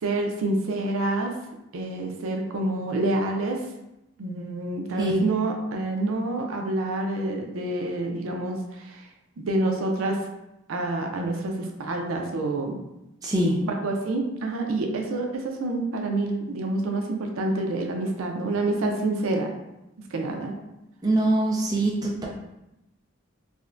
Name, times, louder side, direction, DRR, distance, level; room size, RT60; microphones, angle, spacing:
voice 1, 0.0-1.3 1.7-3.6 4.2-9.0 9.4-10.2 10.7-12.8 13.6-19.5 20.1-20.5, right 2 dB, 85° right, 2 dB, 0.5 m, -27 dB
voice 2, 13.2-13.6 21.0-22.2, right 1 dB, 20° right, -3 dB, 0.4 m, -23 dB
3.4 x 2.1 x 2.4 m, 0.92 s
head